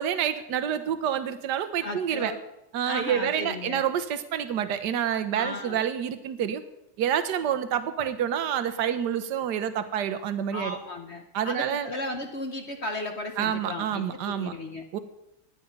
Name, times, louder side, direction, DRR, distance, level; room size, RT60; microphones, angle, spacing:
voice 1, 0.0-2.3 2.7-6.6 7.0-10.8 11.3-11.9 13.4-14.6 14.9-15.0, right 9 dB, 60° right, 10 dB, 1.4 m, -28 dB
voice 2, 1.8-2.4 2.9-3.9 5.3-5.8 10.5-14.8, left 2 dB, 50° left, 5 dB, 0.8 m, -35 dB
16.5 x 10.5 x 5.4 m, 0.87 s
omnidirectional pair, 2.4 m